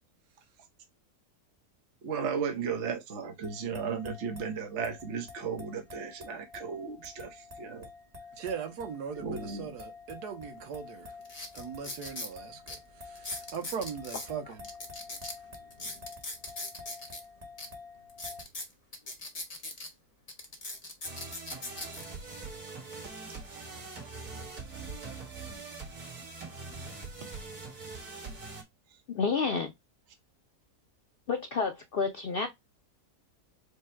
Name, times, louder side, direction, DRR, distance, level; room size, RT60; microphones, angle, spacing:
voice 1, 2.0-7.9 9.2-9.7, right 6 dB, 50° right, 1.1 m, -35 dB
sound 1, 3.4-18.4, left 4 dB, 25° right, 1.2 m, -49 dB
voice 2, 8.4-11.1 11.5-14.7, right 7 dB, 85° right, 1.5 m, -39 dB
sound 2, 10.6-10.7 11.2-12.3 12.7-12.8 13.1-14.3 14.6-17.2 17.6-17.7 18.1-19.9 20.3-22.0 22.7-22.9, left 2 dB, 30° left, 0.8 m, -40 dB
sound 3, 21.0-28.6, right 3 dB, 65° right, 2.1 m, -43 dB
voice 3, 29.1-29.7 31.3-32.5, left 5 dB, 80° left, 0.5 m, -29 dB
5.0 x 2.2 x 4.3 m
omnidirectional pair, 1.7 m